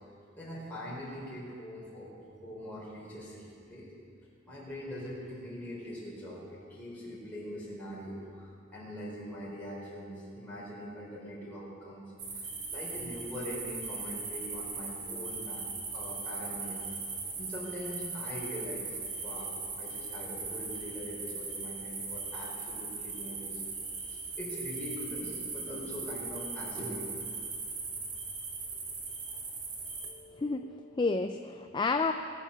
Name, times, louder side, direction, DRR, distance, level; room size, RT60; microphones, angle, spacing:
voice 1, 0.4-2.1 2.4-3.9 4.4-12.0 12.3-17.0 17.4-23.7 24.0-27.2 28.7-28.8 29.3-29.4, equal, 10° left, -7 dB, 4.7 m, -42 dB
sound 1, 12.2-30.1, right 4 dB, 60° right, 2.4 m, -39 dB
voice 2, 30.1-32.1, left 3 dB, 25° left, 7 dB, 0.4 m, -31 dB
21.0 x 7.3 x 6.8 m, 2.4 s
head